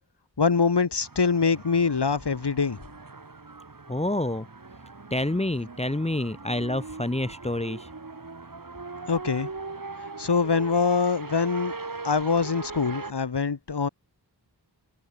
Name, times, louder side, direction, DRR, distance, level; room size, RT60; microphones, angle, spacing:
voice 1, 0.4-2.8 9.1-9.5 10.2-11.7 12.0-13.9, left 5 dB, 70° left, 3.2 m, -24 dB
sound 1, 1.0-13.1, right 3 dB, 50° right, 6.1 m, -40 dB
voice 2, 3.9-4.4 5.1-7.9, left 1 dB, 15° left, 1.4 m, -28 dB
wide cardioid pair, 80°, 41 cm